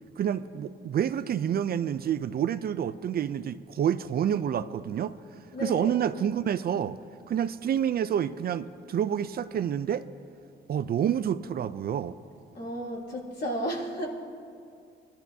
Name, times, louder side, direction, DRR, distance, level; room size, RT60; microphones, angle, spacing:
voice 1, 0.2-5.2 5.6-7.0 7.3-10.0 10.7-12.2, right 9 dB, 50° right, 13 dB, 0.4 m, -28 dB
voice 2, 5.5-6.0 12.5-14.1, equal, 60° left, -6 dB, 3.7 m, -33 dB
23.0 x 12.0 x 2.7 m, 2.3 s
cardioid pair, 90°, 20 cm